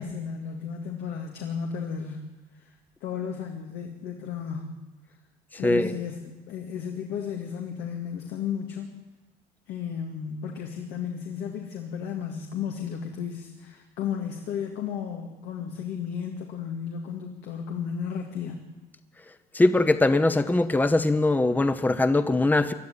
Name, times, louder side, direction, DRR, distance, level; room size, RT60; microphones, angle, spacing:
voice 1, 0.0-2.2 2.5-2.7 3.0-4.8 5.6-8.9 9.7-18.7, left 7 dB, 85° left, 2 dB, 2.1 m, -34 dB
voice 2, 19.5-22.7, left 2 dB, 10° left, 10 dB, 0.9 m, -21 dB
21.0 x 12.5 x 9.9 m, 1.1 s
cardioid pair, 110°, 17 cm